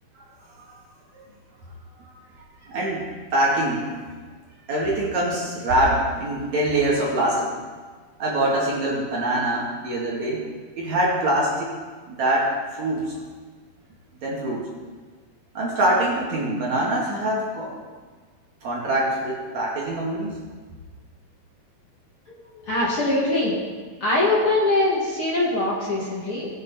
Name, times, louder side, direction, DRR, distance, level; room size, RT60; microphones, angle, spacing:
voice 1, 2.6-3.9 4.7-7.6 8.2-10.4 10.7-11.7 12.1-13.2 14.2-14.7 15.5-17.8 18.6-20.4, right 1 dB, 50° right, -4 dB, 3.1 m, -24 dB
voice 2, 22.7-23.5 24.0-26.5, left 2 dB, 40° left, -6 dB, 2.6 m, -22 dB
20.0 x 7.7 x 4.3 m, 1.5 s
omnidirectional pair, 4.4 m